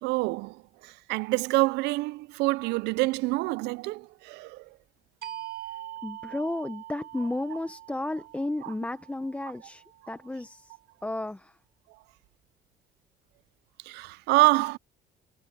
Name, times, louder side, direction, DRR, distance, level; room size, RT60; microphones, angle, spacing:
voice 1, 0.0-4.8 8.6-8.7 9.4-9.5 10.0-10.2 13.8-14.8, right 22 dB, 90° right, 0.4 m, -27 dB
sound 1, 5.2-10.5, right 14 dB, 70° right, 4.6 m, -43 dB
voice 2, 6.0-10.7 11.0-11.5, left 2 dB, 10° left, 0.8 m, -33 dB
cardioid pair, 110°, 17 cm